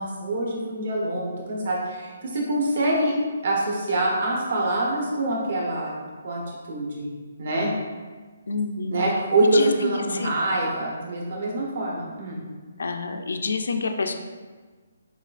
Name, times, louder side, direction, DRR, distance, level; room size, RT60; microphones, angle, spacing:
voice 1, 0.0-3.1 3.4-5.9 6.2-6.4 6.7-7.1 7.4-7.7 8.9-12.4, right 2 dB, 60° right, -3 dB, 1.0 m, -25 dB
voice 2, 8.5-9.0 9.4-10.3 12.8-14.1, left 3 dB, 80° left, 6 dB, 0.4 m, -28 dB
6.5 x 2.4 x 2.4 m, 1.4 s
hypercardioid pair, 160°, 0 cm